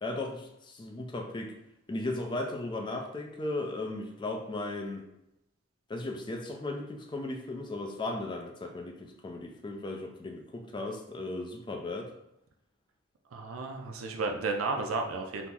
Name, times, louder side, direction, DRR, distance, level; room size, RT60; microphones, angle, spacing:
voice 1, 0.0-1.5 1.9-5.1 5.9-12.1, left 2 dB, 25° left, 2 dB, 0.4 m, -36 dB
voice 2, 13.3-15.5, right 3 dB, 85° right, 3 dB, 0.5 m, -33 dB
2.9 x 2.0 x 3.5 m, 0.84 s
head